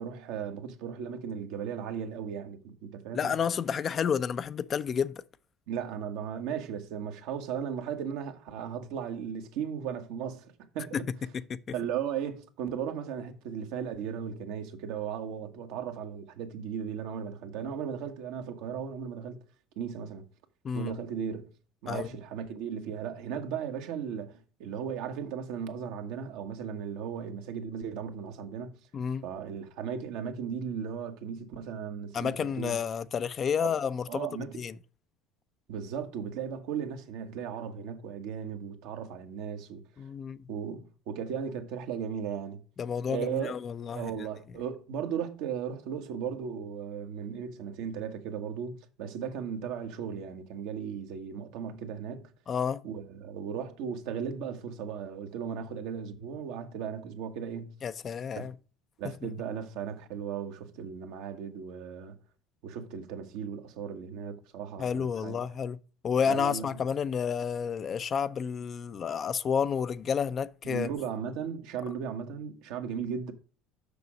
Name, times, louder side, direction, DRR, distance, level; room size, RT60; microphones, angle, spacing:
voice 1, 0.0-3.3 5.7-11.0 11.7-19.4 19.8-20.2 20.7-21.5 21.8-28.7 29.2-32.8 33.6-33.7 34.1-34.6 35.7-39.8 40.5-42.6 43.1-43.5 43.9-52.2 52.8-57.7 58.4-58.5 59.0-62.2 62.6-65.3 66.2-66.7 70.6-73.3, right 7 dB, 75° right, 1.3 m, -36 dB
voice 2, 3.1-5.2 10.9-11.0 11.3-11.6 20.6-20.9 21.9-22.1 28.9-29.2 32.1-34.7 40.0-40.5 42.8-44.1 52.5-52.8 57.8-58.5 64.8-65.8 66.0-70.9, left 7 dB, 45° left, 0.6 m, -30 dB
6.8 x 6.2 x 5.1 m
supercardioid pair, 80°, 0 cm